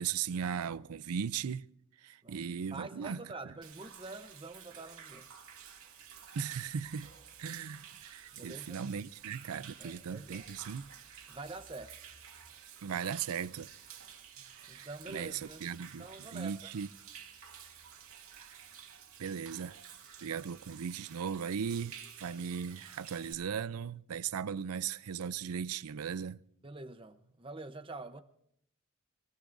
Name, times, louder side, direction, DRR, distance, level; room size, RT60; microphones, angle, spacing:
voice 1, 0.0-1.7 2.0-3.2 6.3-7.1 7.4-10.9 12.8-13.7 14.6-16.9 19.2-19.8 20.2-26.4, right 7 dB, 85° right, 0.5 m, -37 dB
voice 2, 2.7-5.3 8.3-8.8 9.8-10.5 11.3-12.0 14.4-15.6 16.0-16.7 26.6-28.2, right 3 dB, 25° right, 0.8 m, -46 dB
Human voice / Rain / Stream, 3.6-23.3, right 8 dB, 70° right, 2.4 m, -52 dB
25.0 x 17.0 x 2.6 m
head